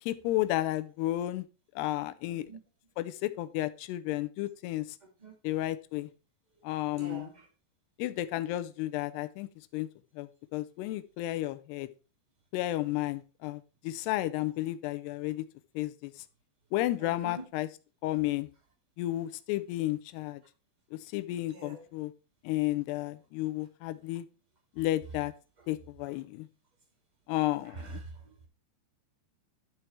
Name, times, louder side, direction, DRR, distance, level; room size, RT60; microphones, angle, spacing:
voice 1, 0.0-1.5 1.8-2.5 3.0-5.0 5.4-6.1 6.6-7.3 8.0-9.9 10.2-11.9 12.5-15.5 15.8-16.1 16.7-17.7 18.0-18.5 19.0-20.4 20.9-22.1 22.4-24.3 24.8-25.3 25.7-26.5 27.3-28.0, left 16 dB, 80° left, 13 dB, 2.6 m, -32 dB
voice 2, 2.3-2.6 5.2-5.3 6.9-7.4 17.0-17.4 21.5-21.8 27.6-28.5, right 3 dB, 35° right, -1 dB, 0.7 m, -45 dB
12.5 x 4.8 x 4.4 m, 0.34 s
omnidirectional pair, 5.0 m